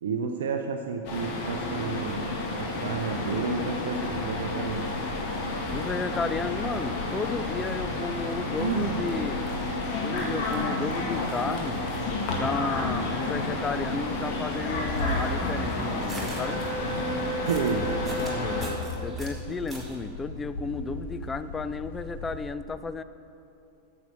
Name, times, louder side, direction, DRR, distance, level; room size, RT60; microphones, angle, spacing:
voice 1, 0.0-4.9 8.6-9.2 17.5-17.9, right 5 dB, 60° right, 4 dB, 0.5 m, -31 dB
sound 1, 1.0-18.7, left 2 dB, 45° left, 1.7 m, -31 dB
sound 2, 4.0-22.5, left 2 dB, 65° left, 1.4 m, -39 dB
voice 2, 5.7-9.4 10.0-11.9 12.4-16.6 18.2-23.0, left 4 dB, 15° left, 13 dB, 0.4 m, -33 dB
sound 3, 14.7-20.0, right 1 dB, 10° right, 1.7 m, -44 dB
8.9 x 6.9 x 6.6 m, 2.8 s
figure-of-eight pair, 90°, 0 cm